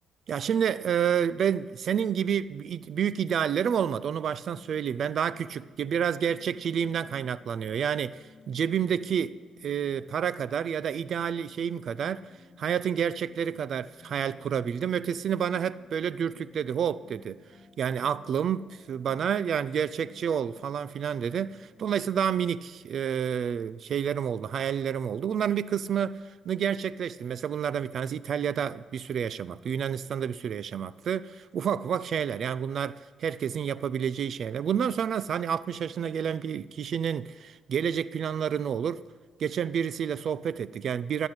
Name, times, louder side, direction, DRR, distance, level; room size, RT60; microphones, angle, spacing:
voice 1, 0.3-9.4 9.6-12.2 12.6-17.4 17.8-39.0 39.4-41.3, right 8 dB, 60° right, 0.4 m, -29 dB
sound 1, 4.1-22.1, left 4 dB, 45° left, 2.1 m, -56 dB
18.0 x 9.0 x 8.0 m
cardioid pair, 90°, 0 cm